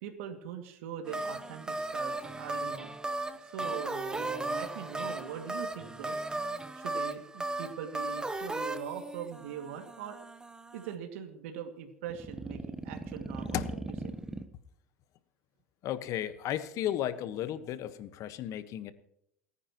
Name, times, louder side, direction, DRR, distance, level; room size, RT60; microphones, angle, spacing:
voice 1, 0.0-2.9 3.4-6.2 6.7-10.2 10.7-13.8 14.0-14.2, right 8 dB, 75° right, 4 dB, 2.2 m, -42 dB
sound 1, 1.1-11.0 12.1-14.4, right 2 dB, 10° right, 1.1 m, -37 dB
voice 2, 15.8-18.9, left 11 dB, 50° left, 11 dB, 1.4 m, -34 dB
28.5 x 9.8 x 3.1 m, 0.75 s
supercardioid pair, 105°, 7 cm